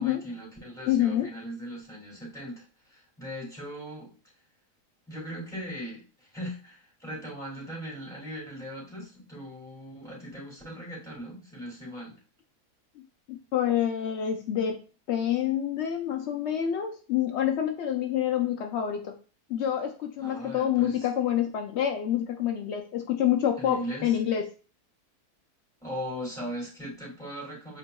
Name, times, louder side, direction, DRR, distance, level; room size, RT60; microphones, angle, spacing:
voice 1, 0.0-4.1 5.1-12.1 20.2-21.1 23.6-24.1 25.8-27.8, equal, ahead, -4 dB, 2.4 m, -39 dB
voice 2, 0.9-1.3 13.3-19.1 19.5-24.5, left 10 dB, 80° left, 4 dB, 0.6 m, -27 dB
7.9 x 3.0 x 2.3 m, 0.35 s
omnidirectional pair, 1.7 m